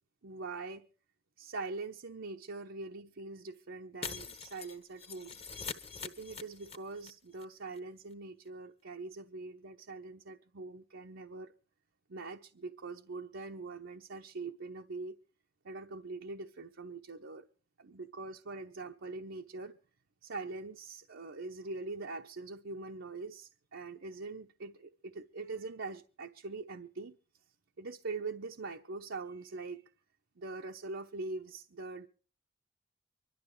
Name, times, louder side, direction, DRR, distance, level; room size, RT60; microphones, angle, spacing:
voice 1, 0.2-0.9 1.4-5.4 6.0-11.5 12.1-15.2 15.6-17.5 17.8-19.8 20.2-27.1 27.8-29.8 30.4-32.1, right 3 dB, 80° right, 0.8 m, -43 dB
Shatter, 4.0-7.1 7.3-7.4 7.8-7.9, left 5 dB, 35° left, 1.3 m, -43 dB
25.0 x 12.0 x 3.2 m
head